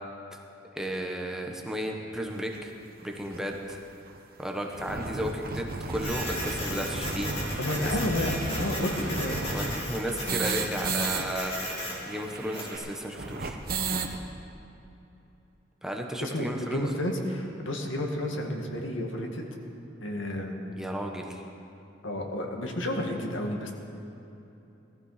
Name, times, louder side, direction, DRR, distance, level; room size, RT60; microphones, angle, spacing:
voice 1, 0.7-2.7 3.0-3.8 4.4-7.3 7.8-8.0 9.5-11.5 12.1-13.6 15.8-16.9 20.8-21.4, equal, 5° right, 1 dB, 1.2 m, -33 dB
sound 1, 2.5-2.6 3.3-3.4 3.7-3.8 4.1-4.2 4.5-11.2 11.5-11.6 11.8-14.2, right 3 dB, 50° right, 1.1 m, -33 dB
Printer, 6.0-12.8, left 1 dB, 30° left, 3.4 m, -36 dB
voice 2, 7.6-9.4 16.2-19.5 20.0-20.5 22.0-23.7, left 1 dB, 85° left, 2 dB, 2.0 m, -31 dB
18.5 x 14.0 x 5.0 m, 2.9 s
head